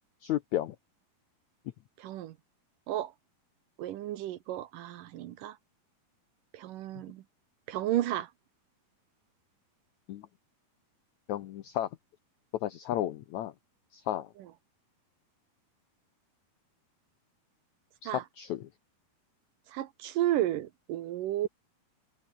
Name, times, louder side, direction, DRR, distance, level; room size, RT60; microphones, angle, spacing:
voice 1, 0.2-0.8 10.1-10.3 11.3-11.9 12.5-13.5 13.9-14.3 18.0-18.7, left 12 dB, 80° left, 1.7 m, -33 dB
voice 2, 2.0-2.4 2.9-3.1 3.8-5.6 6.5-7.2 7.7-8.3 18.1-18.2 19.7-21.5, right 13 dB, 70° right, 2.3 m, -32 dB
omnidirectional pair, 4.5 m